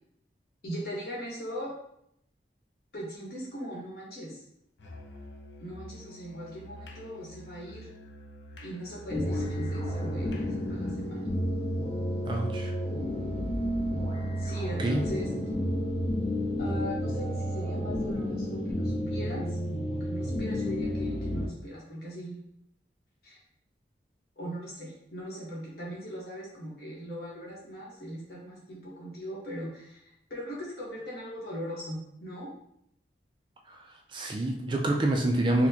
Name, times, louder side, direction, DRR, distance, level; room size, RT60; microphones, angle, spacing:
voice 1, 0.6-1.7 2.9-4.4 5.6-7.9 8.6-11.3 14.4-15.3 16.6-19.6 19.9-22.4 23.2-23.4 24.4-30.0 30.3-32.5, equal, 60° left, -5 dB, 1.2 m, -39 dB
Musical instrument, 4.8-11.1, left 1 dB, 80° left, 0.5 m, -47 dB
sound 1, 9.1-21.5, equal, 35° left, 0.5 m, -31 dB
voice 2, 12.3-12.7 14.8-15.0 33.7-33.8 34.1-35.7, right 1 dB, 25° right, 2 dB, 0.3 m, -27 dB
4.2 x 2.1 x 2.8 m, 0.74 s
head